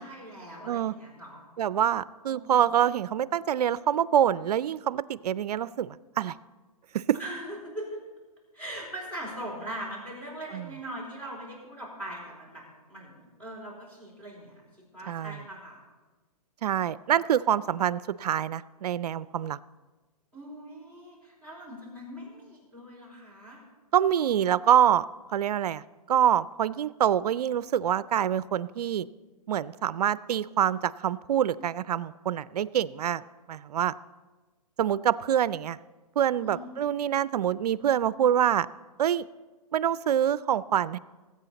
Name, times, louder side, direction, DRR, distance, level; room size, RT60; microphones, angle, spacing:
voice 1, 0.0-1.4 2.3-2.7 7.2-8.0 8.5-14.6 14.9-15.8 20.3-23.6 36.4-36.8, right 1 dB, 10° left, -5 dB, 4.0 m, -41 dB
voice 2, 1.6-6.4 6.9-7.0 10.5-10.7 15.1-15.4 16.6-19.6 23.9-25.1 25.3-25.8 26.1-29.1 29.5-33.2 33.5-33.9 34.8-35.8 36.2-38.7 39.0-39.3 39.7-41.0, right 10 dB, 75° right, 18 dB, 0.5 m, -26 dB
19.5 x 8.4 x 4.0 m, 1.2 s
hypercardioid pair, 145°, 20 cm